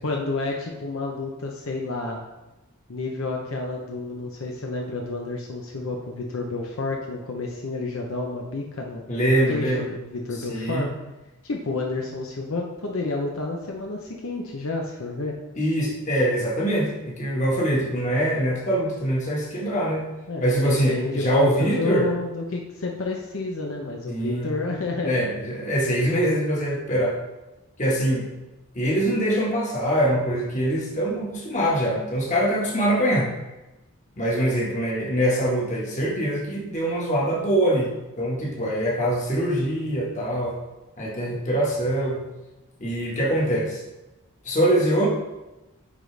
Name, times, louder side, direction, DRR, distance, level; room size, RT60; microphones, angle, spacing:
voice 1, 0.0-2.2 2.9-10.9 11.4-15.3 20.3-25.2, left 3 dB, 70° left, 0 dB, 0.7 m, -30 dB
voice 2, 9.1-9.8 10.5-10.9 15.6-20.0 20.4-22.1 24.1-24.5 25.0-27.2 27.8-28.3 28.7-33.3 34.2-37.9 38.2-40.6 41.0-42.2 42.8-43.8 44.4-45.1, right 1 dB, 35° left, -3 dB, 1.5 m, -23 dB
9.7 x 4.0 x 3.4 m, 1.0 s
head